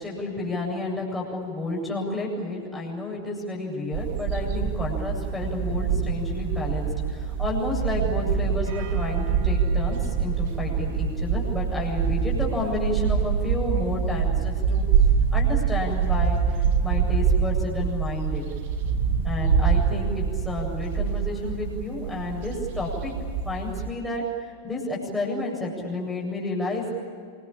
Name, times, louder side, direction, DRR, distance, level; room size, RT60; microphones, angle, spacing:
voice 1, 0.0-14.9 15.3-18.4 19.2-26.9, left 2 dB, 5° left, -2 dB, 8.0 m, -31 dB
sound 1, 3.9-23.9, right 6 dB, 50° right, 2.7 m, -25 dB
28.0 x 22.0 x 8.7 m, 2.2 s
figure-of-eight pair, 90°, 0 cm